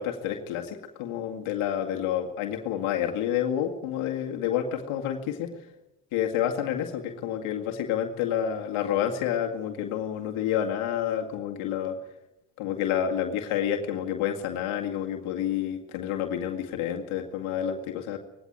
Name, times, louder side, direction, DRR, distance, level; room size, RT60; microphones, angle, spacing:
voice 1, 0.0-5.5 6.1-12.0 12.6-18.2, left 9 dB, 80° left, 3 dB, 2.2 m, -29 dB
19.5 x 16.5 x 9.3 m, 0.97 s
supercardioid pair, 70°, 48 cm